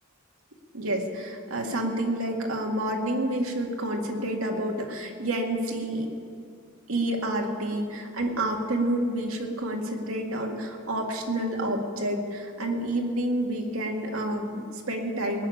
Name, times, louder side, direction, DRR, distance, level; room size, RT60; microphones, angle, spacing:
voice 1, 0.7-6.1 6.9-15.5, right 1 dB, 85° right, 2 dB, 2.0 m, -29 dB
19.0 x 6.9 x 9.8 m, 2.2 s
head